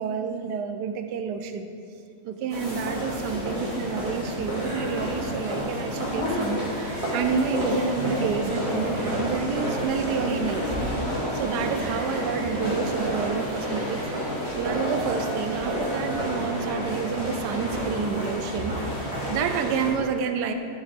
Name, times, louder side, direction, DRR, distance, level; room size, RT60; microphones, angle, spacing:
voice 1, 0.0-1.7 2.2-11.0 11.3-20.5, right 6 dB, 80° right, 7 dB, 1.2 m, -29 dB
sound 1, 2.5-19.9, equal, 20° right, 2.1 m, -29 dB
10.0 x 7.0 x 3.5 m, 2.5 s
omnidirectional pair, 1.8 m